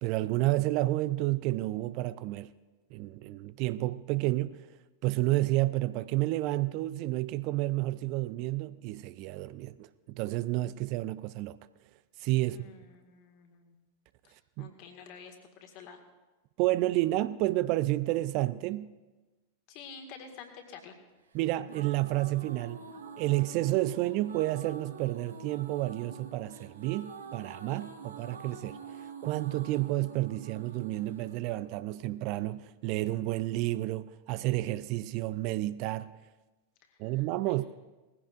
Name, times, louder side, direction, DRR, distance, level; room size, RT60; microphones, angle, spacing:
voice 1, 0.0-2.5 2.9-4.7 5.0-11.6 12.2-12.6 14.6-14.7 16.6-18.9 21.3-22.8 23.2-28.8 29.2-36.1 37.0-37.7, right 17 dB, 45° right, 0.4 m, -30 dB
voice 2, 12.4-13.7 14.6-15.4 15.6-16.0 19.7-20.9 36.9-37.5, left 6 dB, 45° left, 2.0 m, -49 dB
sound 1, 21.4-32.4, right 5 dB, 70° right, 1.3 m, -47 dB
19.5 x 15.5 x 2.6 m
figure-of-eight pair, 90°, 0 cm